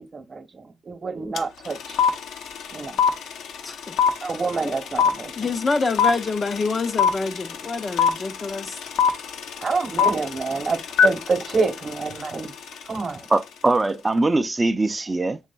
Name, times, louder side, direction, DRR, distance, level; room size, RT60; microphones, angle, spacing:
voice 1, 0.0-2.0 2.7-3.0 4.2-5.3 9.6-12.5 12.9-13.3, right 4 dB, 35° right, 1.0 m, -27 dB
sound 1, 1.4-1.5 1.6-12.8, left 7 dB, 80° left, 0.8 m, -22 dB
voice 2, 3.6-4.0 4.6-4.8 5.3-8.8, left 3 dB, 35° left, 0.6 m, -26 dB
voice 3, 13.3-15.4, right 2 dB, 20° right, 0.5 m, -22 dB
6.2 x 3.6 x 2.3 m
cardioid pair, 90°, 0 cm